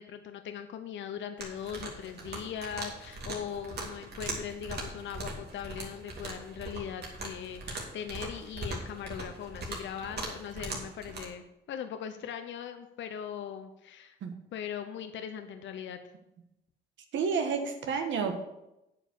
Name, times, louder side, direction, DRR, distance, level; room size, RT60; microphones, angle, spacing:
voice 1, 0.0-14.2 14.5-16.0, left 8 dB, 70° left, 8 dB, 0.8 m, -40 dB
sound 1, 1.4-11.3, right 2 dB, 55° right, 2.6 m, -40 dB
voice 2, 17.1-18.4, right 5 dB, 70° right, 5 dB, 1.3 m, -30 dB
8.7 x 5.4 x 6.9 m, 0.89 s
cardioid pair, 90°, 20 cm